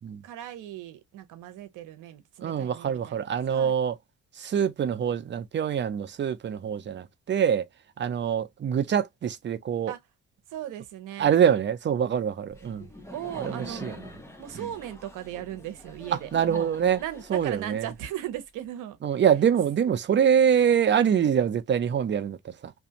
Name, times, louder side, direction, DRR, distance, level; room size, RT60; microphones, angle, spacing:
voice 1, 0.2-3.7 9.9-10.0 10.5-11.3 13.1-13.9 14.4-16.7 17.0-19.2, right 12 dB, 85° right, 0.7 m, -38 dB
voice 2, 2.4-4.0 4.4-7.7 8.0-9.9 11.2-12.9 13.3-14.0 14.6-14.7 16.3-17.0 17.3-17.9 19.0-22.7, right 8 dB, 40° right, 0.5 m, -25 dB
Laughter, 12.5-18.3, left 1 dB, 10° left, 0.8 m, -46 dB
2.5 x 2.3 x 2.7 m
cardioid pair, 90°, 30 cm